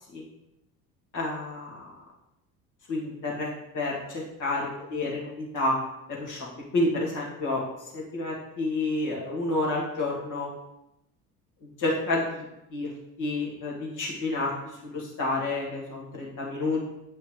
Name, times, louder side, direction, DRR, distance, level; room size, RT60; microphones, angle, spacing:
voice 1, 1.1-1.8 2.9-3.5 3.7-5.8 6.1-6.5 6.7-7.6 7.9-10.5 11.8-12.4 12.7-12.9 13.2-14.5 14.8-16.8, left 2 dB, 40° left, -3 dB, 2.1 m, -29 dB
8.0 x 5.4 x 3.1 m, 0.86 s
figure-of-eight pair, 60°, 47 cm